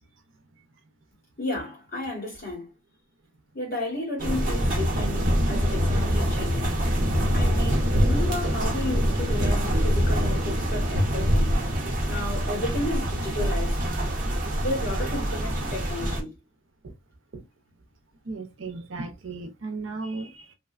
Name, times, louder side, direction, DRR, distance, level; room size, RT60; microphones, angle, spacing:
voice 1, 1.4-2.7 3.5-6.7 7.3-11.5 12.1-13.8 14.6-16.3, left 1 dB, 50° left, 1.8 m, -33 dB
sound 1, 4.2-16.2, equal, 45° right, 0.9 m, -24 dB
voice 2, 18.2-20.5, right 3 dB, 80° right, 0.6 m, -35 dB
3.0 x 2.1 x 2.4 m
head